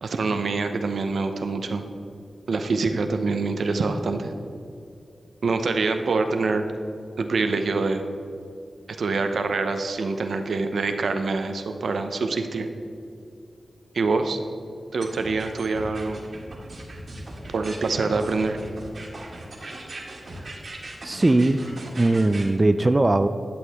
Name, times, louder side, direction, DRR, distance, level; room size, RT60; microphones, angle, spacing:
voice 1, 0.0-1.8 2.5-4.3 5.4-6.7 7.2-8.0 9.0-12.7 13.9-14.4 14.9-16.2 17.5-18.6, right 3 dB, 80° right, 7 dB, 0.7 m, -25 dB
sound 1, 15.0-22.5, right 2 dB, 55° right, 1.8 m, -39 dB
voice 2, 21.0-21.6 22.0-23.3, right 2 dB, 25° right, 9 dB, 0.3 m, -19 dB
11.5 x 7.8 x 3.6 m, 2.5 s
wide cardioid pair, 90°, 0 cm